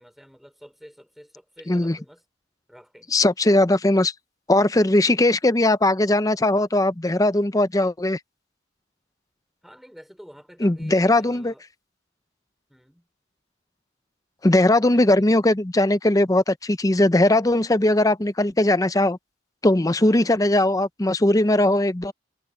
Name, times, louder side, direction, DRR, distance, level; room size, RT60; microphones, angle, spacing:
voice 1, 0.0-2.2 2.7-3.1 9.6-11.6 12.7-13.1 14.8-15.3 20.0-20.3, equal, ahead, 5.1 m, -48 dB
voice 2, 1.7-2.0 3.1-4.1 4.5-8.2 10.6-11.5 14.4-19.2 19.6-22.1, left 1 dB, 20° left, 0.7 m, -19 dB
head